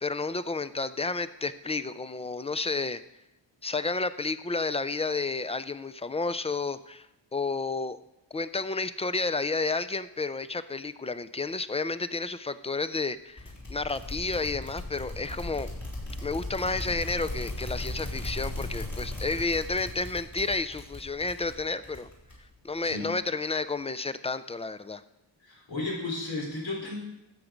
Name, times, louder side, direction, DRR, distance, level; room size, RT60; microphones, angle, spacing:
voice 1, 0.0-3.0 3.6-7.1 7.3-8.0 8.3-15.7 16.2-22.1 22.6-25.0, left 3 dB, 15° left, 14 dB, 0.3 m, -31 dB
sound 1, 13.4-22.6, left 1 dB, 40° left, 4.0 m, -37 dB
voice 2, 25.4-27.0, left 2 dB, 75° left, -1 dB, 4.3 m, -34 dB
13.0 x 8.0 x 5.1 m, 0.90 s
wide cardioid pair, 125°, 45 cm